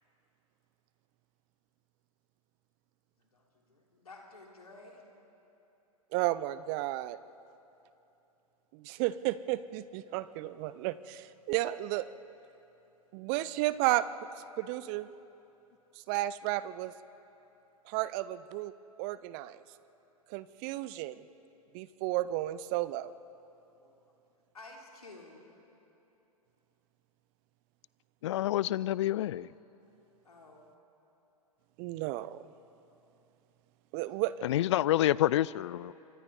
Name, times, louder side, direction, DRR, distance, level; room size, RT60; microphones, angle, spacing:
voice 1, 3.3-5.0 23.8-24.0 24.5-25.4 30.2-30.6, left 2 dB, 75° left, 0 dB, 3.2 m, -52 dB
voice 2, 6.1-7.2 8.7-12.0 13.1-14.0 14.6-15.1 16.1-16.9 17.9-18.7 19.0-19.6 20.3-21.2 21.7-23.1 31.8-32.4 33.9-34.5, right 16 dB, 35° right, 16 dB, 0.5 m, -33 dB
voice 3, 28.2-29.5 34.4-35.9, left 13 dB, 50° left, 21 dB, 0.4 m, -28 dB
27.0 x 24.5 x 4.9 m, 3.0 s
figure-of-eight pair, 105°, 19 cm